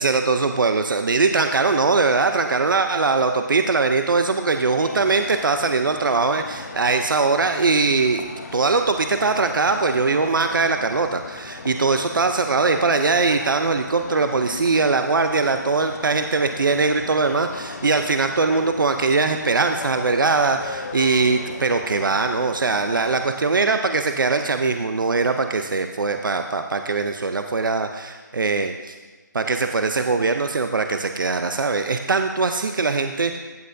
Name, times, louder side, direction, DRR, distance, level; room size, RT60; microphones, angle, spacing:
voice 1, 0.0-8.2 8.5-28.9 29.3-33.4, right 4 dB, 90° right, 7 dB, 0.6 m, -21 dB
sound 1, 4.8-23.3, left 4 dB, 50° left, 0.8 m, -37 dB
15.0 x 7.7 x 2.6 m, 1.3 s
hypercardioid pair, 170°, 11 cm